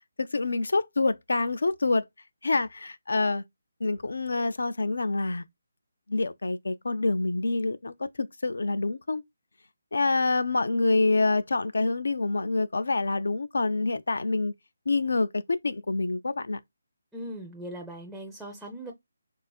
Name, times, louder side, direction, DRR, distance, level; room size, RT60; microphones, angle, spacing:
voice 1, 0.2-2.1 2.4-3.4 3.8-5.4 6.1-9.2 9.9-14.5 14.9-16.6, left 3 dB, 75° left, 0.3 m, -26 dB
voice 2, 17.1-18.9, right 1 dB, ahead, 0.4 m, -39 dB
3.5 x 2.3 x 2.2 m
figure-of-eight pair, 155°, 0 cm